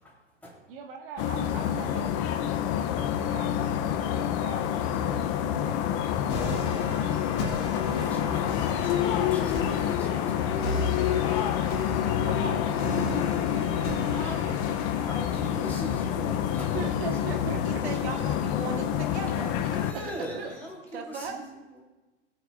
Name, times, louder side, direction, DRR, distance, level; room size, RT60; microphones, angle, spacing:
voice 1, 0.0-0.7 5.2-5.4 7.6-10.7 14.1-14.6 15.0-16.8 17.1-17.2 17.7-18.0 19.2-21.8, equal, 5° left, -5 dB, 3.4 m, -42 dB
voice 2, 0.7-2.4 3.0-7.1 11.4-11.8 12.2-14.6 16.5-17.8 18.1-18.2 19.5-20.1 20.4-20.5, right 6 dB, 50° right, 4 dB, 1.6 m, -42 dB
sound 1, 1.2-19.9, left 10 dB, 30° left, 0.5 m, -28 dB
sound 2, 6.3-17.3, left 2 dB, 50° left, 2.7 m, -36 dB
voice 3, 11.1-11.6 17.6-19.5 20.9-21.4, right 5 dB, 70° right, 3 dB, 2.0 m, -38 dB
19.5 x 8.3 x 2.4 m, 1.1 s
hypercardioid pair, 135°, 34 cm